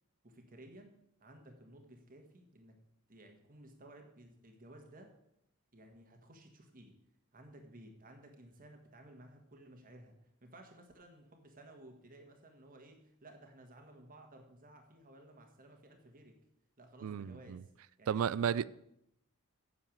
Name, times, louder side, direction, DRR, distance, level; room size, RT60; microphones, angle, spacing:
voice 1, 0.2-2.8 3.1-5.1 5.7-6.9 7.3-16.4 16.8-17.7 18.0-18.7, right 1 dB, 40° right, 1.5 m, -56 dB
voice 2, 17.0-17.6 18.1-18.7, right 8 dB, 65° right, 0.3 m, -33 dB
8.9 x 7.0 x 6.4 m
head